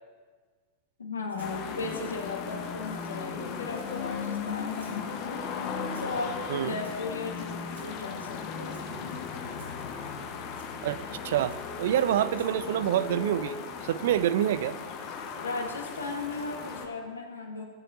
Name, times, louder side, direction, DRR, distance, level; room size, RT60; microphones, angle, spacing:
voice 1, 1.0-5.4 6.0-8.8 15.4-17.6, left 3 dB, 75° left, 2 dB, 1.6 m, -36 dB
Rattle (instrument), 1.3-1.6 2.8-3.0 3.7-4.1 4.7-5.0 5.9-6.2 6.8-7.2 7.7-7.9 8.7-8.9 9.5-9.8 10.6-10.7 11.5-11.6 12.3-12.5, right 3 dB, 75° right, 2.6 m, -55 dB
sound 1, 1.4-16.9, left 6 dB, 40° left, 1.2 m, -37 dB
voice 2, 10.8-13.6 13.8-14.8, right 11 dB, 55° right, 16 dB, 0.3 m, -27 dB
15.5 x 8.9 x 2.7 m, 1.5 s
figure-of-eight pair, 90°, 0 cm